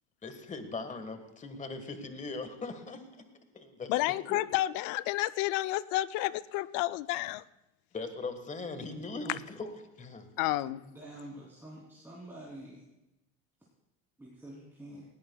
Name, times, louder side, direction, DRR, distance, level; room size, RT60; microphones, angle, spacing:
voice 1, 0.2-3.1 3.5-4.4 7.9-9.7 10.0-10.3, left 3 dB, 20° left, 1.5 m, -40 dB
voice 2, 3.9-7.4 10.4-10.8, left 16 dB, 75° left, 0.5 m, -30 dB
voice 3, 10.6-12.8 14.2-15.1, right 1 dB, 5° right, 3.0 m, -47 dB
19.0 x 17.0 x 2.3 m
cardioid pair, 120°, 34 cm